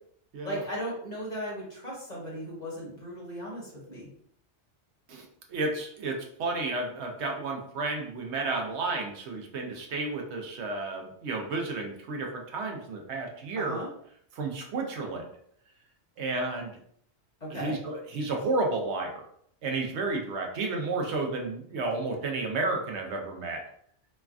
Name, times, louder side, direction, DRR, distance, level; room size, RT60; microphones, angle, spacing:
voice 1, 0.4-4.1 13.6-13.9 17.4-17.8, equal, 40° left, -5 dB, 1.0 m, -36 dB
voice 2, 5.1-13.8 14.4-15.3 16.2-16.7 17.5-19.2 19.6-23.6, right 3 dB, 75° right, 2 dB, 0.9 m, -32 dB
3.1 x 2.2 x 2.3 m, 0.66 s
omnidirectional pair, 1.2 m